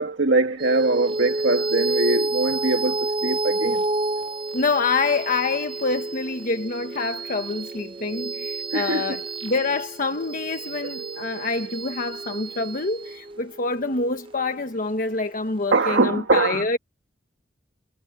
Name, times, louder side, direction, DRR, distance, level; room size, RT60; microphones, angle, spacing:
voice 1, 0.0-3.8 8.7-9.2 10.2-10.3 10.5-11.8 12.5-12.6 15.7-16.7, right 3 dB, 75° right, 1.7 m, -23 dB
sound 1, 0.6-15.3, right 2 dB, 30° right, 0.6 m, -30 dB
voice 2, 4.5-16.8, left 3 dB, 50° left, 1.1 m, -26 dB
head